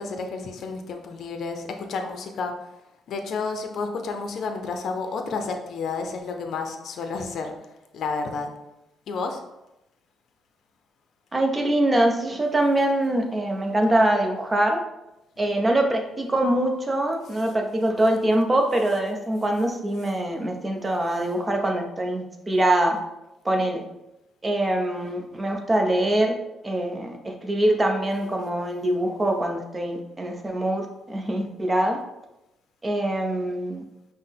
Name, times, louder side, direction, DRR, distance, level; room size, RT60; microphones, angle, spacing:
voice 1, 0.0-1.6 1.9-2.5 3.1-7.5 7.9-8.5 9.1-9.4, left 4 dB, 65° left, 5 dB, 0.5 m, -30 dB
voice 2, 11.3-14.8 15.4-23.0 23.4-23.8 24.4-26.4 26.6-32.0 32.8-33.8, right 1 dB, 20° right, 3 dB, 0.7 m, -23 dB
5.5 x 2.1 x 3.5 m, 0.93 s
cardioid pair, 90°, 0 cm